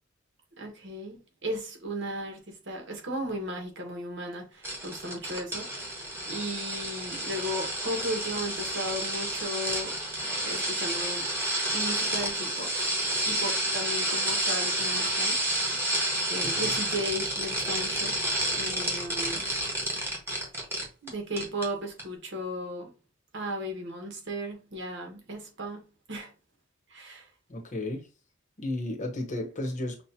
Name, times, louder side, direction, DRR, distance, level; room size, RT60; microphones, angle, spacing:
voice 1, 0.6-9.9 10.4-11.3 11.7-12.9 13.2-15.4 16.3-18.2 18.5-19.5 21.0-22.9 23.3-25.8 26.1-26.3 26.9-27.3, equal, 65° right, 1.3 m, -35 dB
sound 1, 4.6-21.1 21.4-21.7 22.0-22.1, right 1 dB, 10° right, 1.4 m, -30 dB
voice 2, 27.5-28.1 28.6-30.0, left 1 dB, 40° left, 1.1 m, -33 dB
5.9 x 2.4 x 2.8 m
head